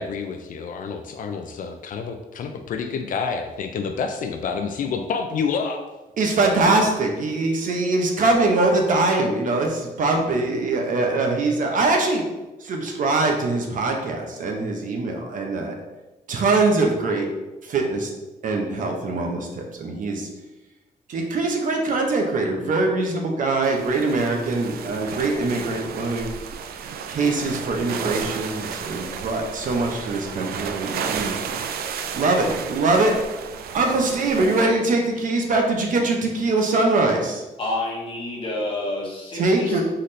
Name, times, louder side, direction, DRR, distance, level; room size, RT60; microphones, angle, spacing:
voice 1, 0.0-5.9, left 5 dB, 60° left, 6 dB, 0.4 m, -28 dB
voice 2, 6.2-12.2 12.6-15.8 16.3-17.3 17.6-18.1 18.4-20.3 21.1-26.3 27.1-31.4 32.1-33.2 33.7-37.4 39.3-39.8, right 3 dB, 60° right, 2 dB, 0.8 m, -22 dB
sound 1, 23.6-34.6, right 6 dB, 80° right, 0.4 m, -33 dB
voice 3, 37.6-39.8, left 2 dB, 35° left, -2 dB, 1.1 m, -29 dB
4.1 x 4.0 x 3.2 m, 1.1 s
wide cardioid pair, 165°, 16 cm